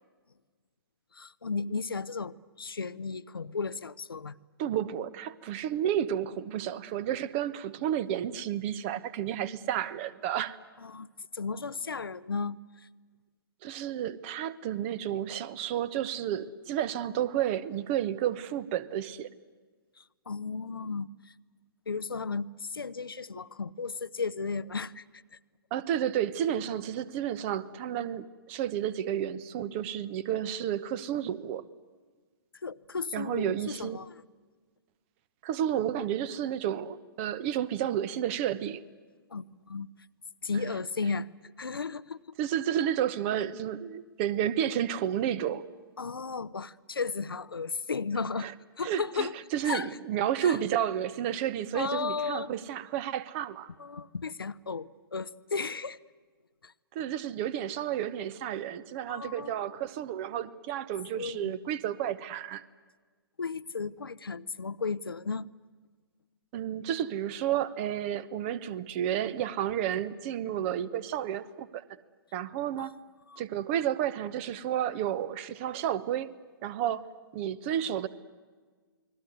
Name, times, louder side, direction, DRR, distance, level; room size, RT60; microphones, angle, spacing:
voice 1, 1.1-4.3 10.8-11.1 11.3-12.9 20.0-21.3 21.9-25.4 32.6-34.2 39.3-39.9 40.4-41.3 41.6-42.4 46.0-48.5 48.8-49.4 49.6-50.0 50.4-50.6 51.7-52.5 53.8-56.0 56.6-56.7 59.1-59.8 61.1-61.5 63.4-65.5 72.8-72.9 73.3-73.4, left 4 dB, 70° left, 0.9 m, -35 dB
voice 2, 4.6-10.6 13.6-19.3 25.7-31.6 33.1-34.0 35.4-38.8 42.4-45.6 48.4-48.5 48.8-53.7 56.9-62.6 66.5-71.8 72.3-72.9 73.4-76.3 76.6-77.0 77.3-78.1, right 10 dB, 30° right, 1.1 m, -31 dB
29.5 x 21.0 x 9.4 m
figure-of-eight pair, 120°, 12 cm